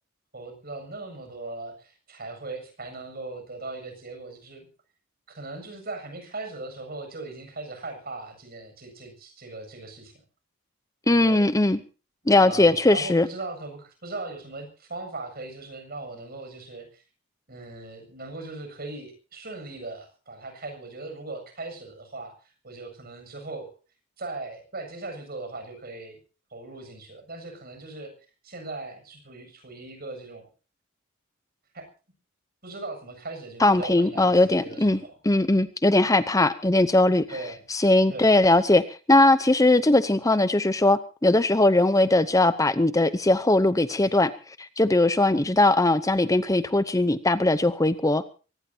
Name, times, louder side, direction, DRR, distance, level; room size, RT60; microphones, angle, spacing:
voice 1, 0.3-4.7 5.3-10.1 11.0-11.4 12.2-17.0 17.5-23.7 24.2-26.2 26.5-28.1 28.4-30.5 31.7-31.9 32.6-35.1 37.3-37.6 38.1-38.3, right 2 dB, 50° right, 7 dB, 7.6 m, -39 dB
voice 2, 11.1-11.8 12.3-13.3 33.6-35.0 35.2-37.3 37.7-48.3, left 2 dB, 15° left, 12 dB, 0.7 m, -20 dB
23.5 x 19.0 x 2.8 m, 0.37 s
head